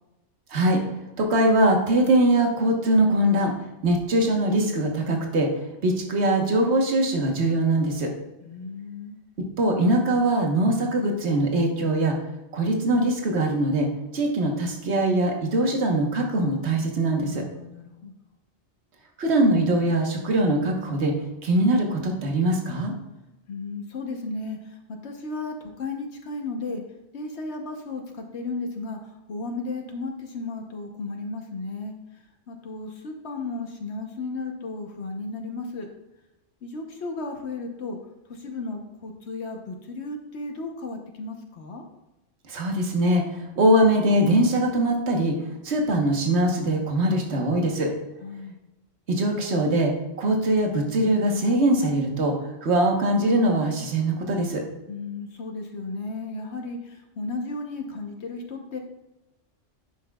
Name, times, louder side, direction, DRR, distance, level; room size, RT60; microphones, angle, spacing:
voice 1, 0.5-0.8 1.2-3.5 3.8-5.5 5.8-8.1 9.6-12.1 12.5-13.9 14.1-17.4 19.2-21.1 21.4-22.9 42.5-45.4 45.6-47.9 49.1-49.9 50.2-52.3 52.6-54.6, right 1 dB, 65° right, 2 dB, 1.4 m, -22 dB
voice 2, 8.4-9.2 17.2-18.1 23.5-26.8 27.1-31.9 32.5-35.9 36.6-38.0 38.3-41.8 48.2-48.6 54.9-58.8, left 3 dB, 65° left, 3 dB, 1.1 m, -34 dB
10.0 x 6.1 x 2.3 m, 0.97 s
omnidirectional pair, 1.2 m